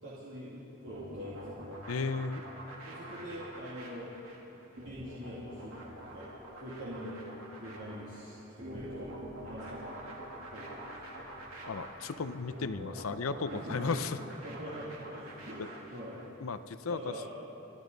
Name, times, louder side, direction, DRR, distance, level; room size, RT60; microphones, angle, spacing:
voice 1, 0.0-1.4 2.9-4.1 4.8-6.3 6.6-7.2 7.6-9.1 9.4-10.9 13.5-14.0 14.4-15.6 15.9-16.3 16.9-17.3, equal, 55° right, -9 dB, 2.6 m, -44 dB
sound 1, 0.9-16.3, right 1 dB, 75° right, 2.9 m, -46 dB
voice 2, 1.9-2.4 11.7-14.2 16.4-17.1, left 4 dB, 75° left, 12 dB, 0.6 m, -35 dB
30.0 x 11.5 x 4.0 m, 3.0 s
head